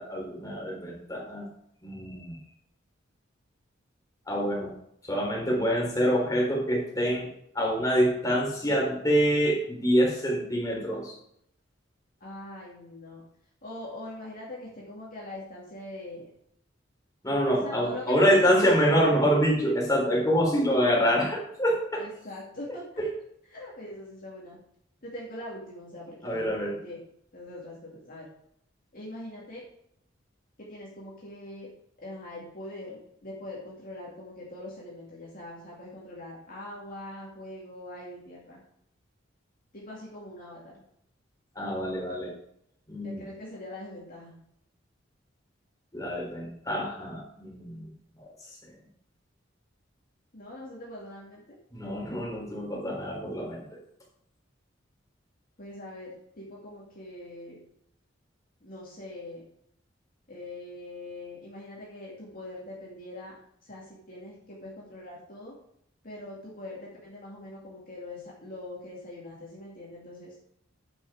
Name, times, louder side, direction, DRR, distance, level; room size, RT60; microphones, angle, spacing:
voice 1, 0.0-1.5 1.8-2.4 4.3-4.7 5.0-7.3 7.5-11.2 17.2-22.0 23.0-23.1 26.2-26.8 41.5-42.3 42.9-43.2 45.9-47.9 48.1-48.6 51.7-53.8, equal, 20° left, -3 dB, 3.7 m, -26 dB
voice 2, 12.2-13.2 13.6-16.3 17.6-19.1 22.0-22.8 23.5-24.6 25.0-27.0 27.3-28.3 28.9-29.6 30.7-31.7 32.0-38.6 39.7-40.8 43.0-44.4 50.3-51.6 55.6-57.6 58.6-59.4 60.3-63.3 63.6-65.5 66.0-70.4, left 1 dB, 45° left, -5 dB, 2.3 m, -42 dB
10.5 x 6.0 x 4.8 m, 0.72 s
head